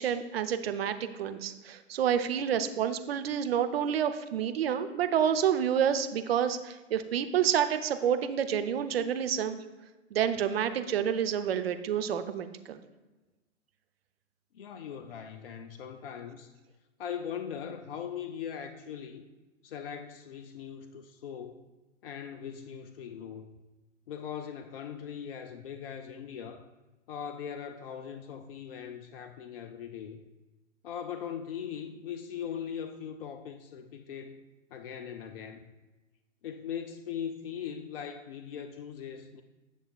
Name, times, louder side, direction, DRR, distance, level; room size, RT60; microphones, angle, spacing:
voice 1, 0.0-9.6 10.1-12.8, right 8 dB, 50° right, 0.7 m, -29 dB
voice 2, 14.5-16.5 17.0-19.3 19.6-21.6 22.0-23.6 24.1-26.7 27.1-30.2 30.8-34.4 34.7-35.7 36.4-39.4, left 8 dB, 50° left, 0.5 m, -40 dB
9.9 x 6.4 x 2.4 m
figure-of-eight pair, 115°, 38 cm